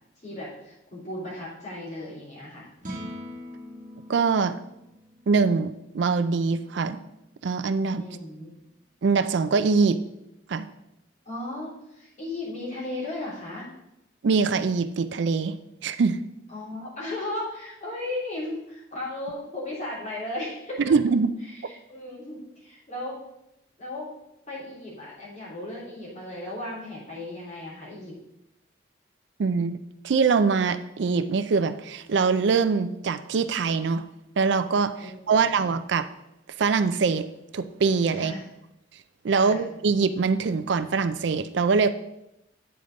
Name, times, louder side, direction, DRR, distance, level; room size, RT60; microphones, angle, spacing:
voice 1, 0.2-2.7 8.0-8.5 11.2-13.7 16.5-20.8 21.5-23.2 23.8-24.1 24.5-28.2 35.0-35.5 38.1-38.5 39.3-39.6, left 1 dB, 40° left, -6 dB, 3.0 m, -36 dB
sound 1, 2.7-9.1, equal, 45° right, 1.3 m, -44 dB
voice 2, 4.1-4.6 5.3-7.0 7.4-8.0 9.0-10.0 10.5-10.7 14.2-15.5 15.8-16.2 20.8-21.3 29.4-29.8 30.0-34.0 34.4-34.9 35.3-36.1 36.6-37.3 37.5-38.3 39.2-41.9, right 5 dB, 70° right, 12 dB, 0.4 m, -23 dB
8.9 x 5.1 x 3.9 m, 0.85 s
head